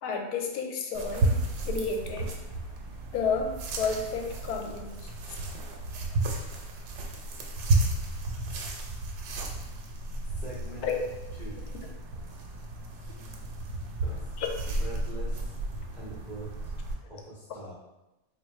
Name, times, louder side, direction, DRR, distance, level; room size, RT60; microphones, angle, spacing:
voice 1, 0.0-1.3 1.7-2.3 3.1-4.9 10.8-11.1 14.4-14.5 17.1-17.2, left 5 dB, 70° left, 2 dB, 1.0 m, -31 dB
sound 1, 0.9-16.9, right 2 dB, 75° right, 1.1 m, -33 dB
voice 2, 10.4-10.9 11.4-11.6 14.1-14.2 14.8-15.4 15.9-16.7 17.1-17.7, right 2 dB, 50° right, -7 dB, 0.5 m, -42 dB
3.6 x 2.7 x 3.1 m, 1.0 s
omnidirectional pair, 1.8 m